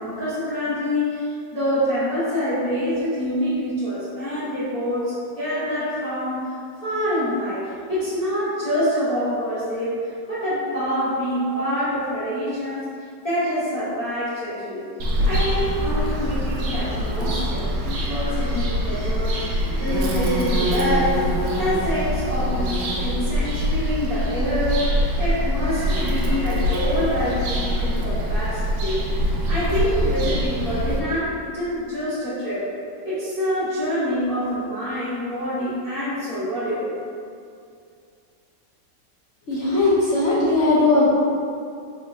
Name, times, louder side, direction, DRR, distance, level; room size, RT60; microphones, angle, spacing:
voice 1, 0.0-6.5 6.8-12.9 13.2-14.9 15.2-21.2 21.6-29.1 29.5-32.6 33.0-36.9, equal, 25° left, -14 dB, 1.0 m, -26 dB
Bird vocalization bird call bird song, 15.0-31.0, equal, 85° right, 0.6 m, -24 dB
voice 2, 39.5-41.1, left 2 dB, 55° left, -10 dB, 0.8 m, -18 dB
4.5 x 3.6 x 2.7 m, 2.4 s
omnidirectional pair, 2.0 m